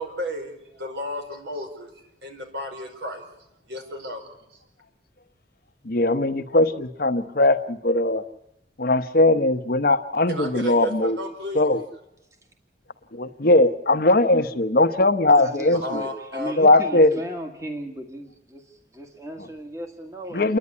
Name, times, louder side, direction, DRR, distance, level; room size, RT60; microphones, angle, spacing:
voice 1, 0.0-1.9 2.2-3.2 3.7-4.3 10.3-11.7 15.7-16.5, equal, 70° right, 3 dB, 5.5 m, -33 dB
voice 2, 5.9-8.2 8.8-11.2 11.5-11.8 13.1-16.0 16.6-17.1 20.3-20.6, left 2 dB, 55° left, 9 dB, 1.0 m, -19 dB
voice 3, 15.3-20.5, right 1 dB, 15° right, 4 dB, 1.8 m, -36 dB
28.5 x 11.5 x 9.7 m, 0.80 s
head